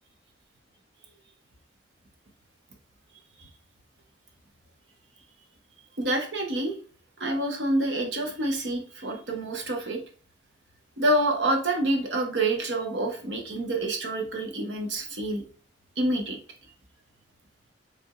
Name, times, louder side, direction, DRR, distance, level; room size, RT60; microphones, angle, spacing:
voice 1, 6.0-6.7 7.2-10.0 11.0-15.4 16.0-16.4, right 1 dB, 85° right, 3 dB, 1.1 m, -27 dB
5.8 x 3.5 x 2.4 m, 0.43 s
head